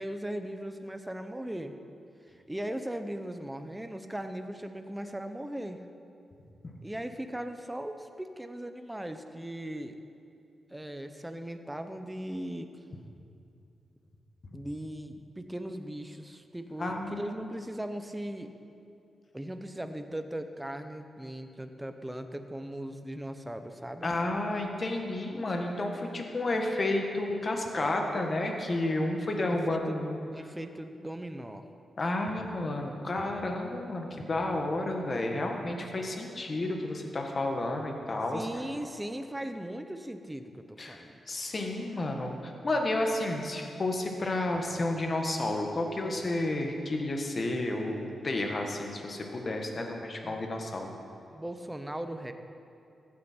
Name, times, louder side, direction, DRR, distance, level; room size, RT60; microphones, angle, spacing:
voice 1, 0.0-1.8 2.5-5.8 6.8-10.0 10.7-12.7 14.5-18.5 19.3-24.1 29.5-30.0 30.3-31.6 35.2-35.9 38.3-41.2 50.2-50.5 51.3-52.3, right 1 dB, 10° right, 8 dB, 0.7 m, -38 dB
voice 2, 16.8-17.3 24.0-30.2 32.0-38.5 40.8-41.0 41.3-50.9, left 2 dB, 40° left, 2 dB, 1.5 m, -31 dB
15.0 x 8.8 x 4.4 m, 2.6 s
cardioid pair, 100°, 0 cm